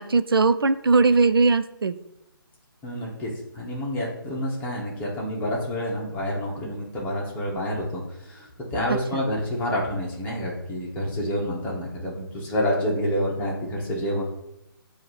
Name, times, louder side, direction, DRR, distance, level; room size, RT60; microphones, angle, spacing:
voice 1, 0.0-2.0 8.9-9.2, right 4 dB, 75° right, 11 dB, 0.4 m, -20 dB
voice 2, 2.8-14.2, equal, 15° left, -3 dB, 1.3 m, -28 dB
7.3 x 2.8 x 4.8 m, 0.86 s
figure-of-eight pair, 140°, 12 cm